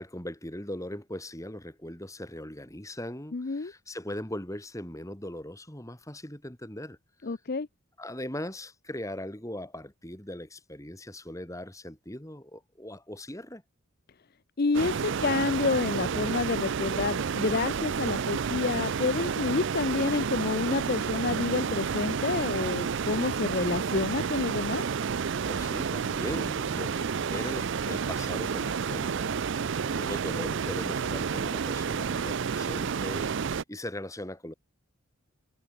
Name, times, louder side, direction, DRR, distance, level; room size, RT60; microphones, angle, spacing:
voice 1, 0.0-7.3 8.0-13.6 25.4-29.4 29.8-34.5, left 1 dB, 15° left, 2.7 m, -39 dB
voice 2, 3.3-3.7 7.2-7.7 14.6-24.8, left 4 dB, 45° left, 0.5 m, -29 dB
sound 1, 14.7-33.6, right 6 dB, 55° right, 0.4 m, -30 dB
head